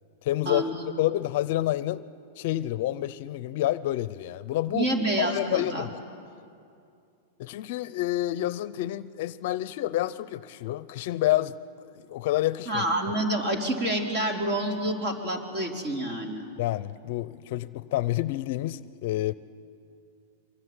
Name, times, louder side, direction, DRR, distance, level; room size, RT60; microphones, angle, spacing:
voice 1, 0.2-2.0 2.4-4.9 5.2-6.0 7.4-11.5 11.9-12.9 16.6-19.3, left 15 dB, 55° left, 16 dB, 0.7 m, -28 dB
voice 2, 4.7-5.9 12.7-16.5, right 1 dB, 35° right, 2 dB, 4.3 m, -28 dB
25.5 x 24.0 x 9.8 m, 2.5 s
supercardioid pair, 150°, 0 cm